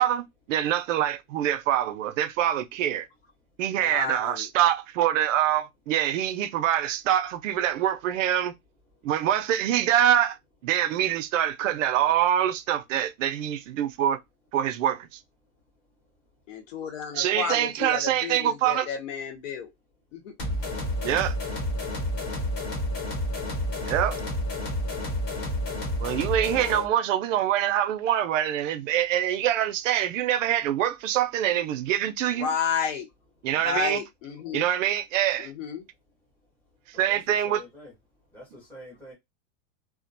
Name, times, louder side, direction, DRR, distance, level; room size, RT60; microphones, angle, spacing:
voice 1, 0.0-3.1 3.6-8.5 9.0-10.4 10.6-14.2 14.5-15.1 17.1-18.9 21.0-21.4 23.9-24.2 26.0-32.5 33.4-34.0 34.5-35.5 37.0-37.6, right 11 dB, 70° right, 0.5 m, -25 dB
voice 2, 3.8-4.5 16.5-19.7 20.1-20.3 32.4-33.1 33.6-34.7 35.4-35.8, left 7 dB, 70° left, 0.9 m, -31 dB
sound 1, 20.4-26.9, left 1 dB, 35° left, 1.0 m, -30 dB
voice 3, 36.9-37.9 38.3-39.1, left 1 dB, 5° left, 0.5 m, -46 dB
2.3 x 2.1 x 2.5 m
supercardioid pair, 170°, 40 cm